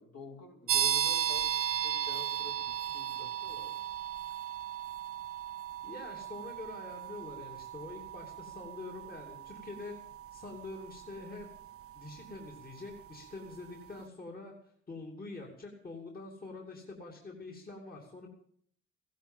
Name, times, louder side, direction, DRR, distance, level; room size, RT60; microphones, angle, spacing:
voice 1, 0.0-3.8, left 3 dB, 55° left, 1 dB, 4.3 m, -49 dB
sound 1, 0.7-13.2, right 10 dB, 50° right, 0.7 m, -36 dB
voice 2, 5.8-10.0 10.3-11.5 11.9-18.3, left 3 dB, 30° left, 0 dB, 2.9 m, -45 dB
16.0 x 11.5 x 7.4 m, 0.63 s
cardioid pair, 90°, 30 cm